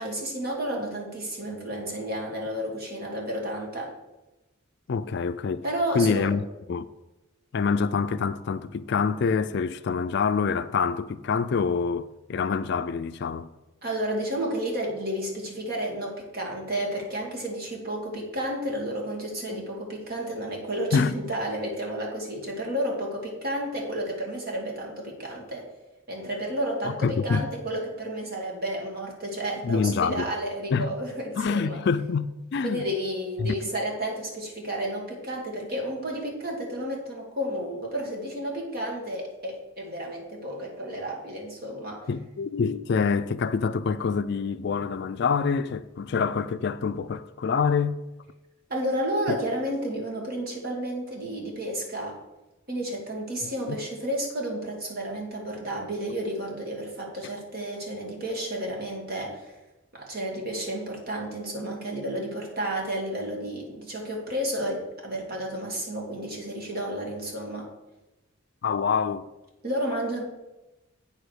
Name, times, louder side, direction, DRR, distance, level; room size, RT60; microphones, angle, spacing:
voice 1, 0.0-3.9 5.6-6.4 13.8-25.7 26.1-31.8 32.6-42.0 48.7-52.2 52.7-59.5 59.9-67.7 69.6-70.2, right 1 dB, 45° right, 2.2 m, -31 dB
voice 2, 4.9-5.6 5.9-6.9 7.5-13.5 20.9-21.2 26.8-27.5 29.6-30.3 30.7-30.9 31.4-32.8 33.4-33.5 42.1-48.0 53.7-53.8 68.6-69.3, left 5 dB, 55° left, 0.3 m, -26 dB
8.5 x 5.1 x 6.4 m
head